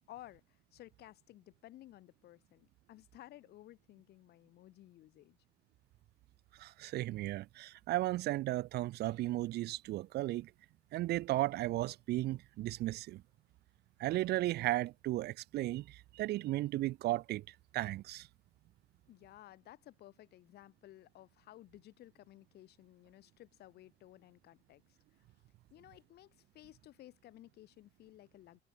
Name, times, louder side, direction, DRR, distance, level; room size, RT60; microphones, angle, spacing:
voice 1, 0.1-5.4 19.1-25.5 25.7-28.6, left 14 dB, 75° left, 4.1 m, -56 dB
voice 2, 6.6-10.5 10.9-13.2 14.0-17.4 17.7-18.3, right 16 dB, 75° right, 1.1 m, -35 dB
cardioid pair, 110°, 17 cm